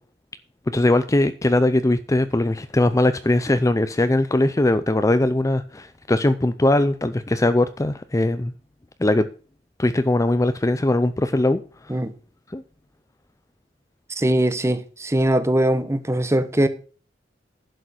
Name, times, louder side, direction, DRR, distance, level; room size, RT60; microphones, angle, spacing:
voice 1, 0.7-8.5 9.0-9.3 9.8-12.0 12.5-12.6, left 1 dB, 15° left, 0.5 m, -20 dB
voice 2, 14.2-16.7, right 1 dB, 15° right, 1.0 m, -21 dB
11.0 x 6.4 x 6.3 m
head